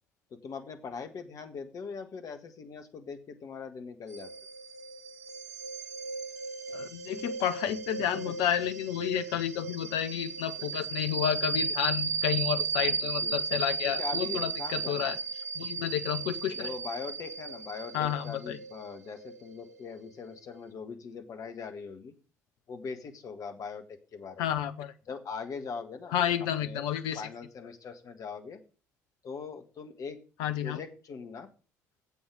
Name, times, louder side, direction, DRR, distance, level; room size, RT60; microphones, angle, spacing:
voice 1, 0.3-4.3 8.3-8.4 12.8-12.9 13.2-13.3 13.8-15.2 16.5-22.1 22.7-24.5 25.1-26.2 26.6-26.8 27.1-28.6 29.2-30.2 30.6-31.5, left 5 dB, 40° left, 7 dB, 1.6 m, -41 dB
sound 1, 4.1-20.4, right 5 dB, 80° right, 0.7 m, -35 dB
voice 2, 6.7-15.2 15.6-16.7 17.9-18.6 24.4-24.9 26.1-27.2 30.4-30.8, left 10 dB, 60° left, 10 dB, 0.8 m, -31 dB
8.4 x 7.9 x 7.0 m, 0.35 s
figure-of-eight pair, 55°, 9 cm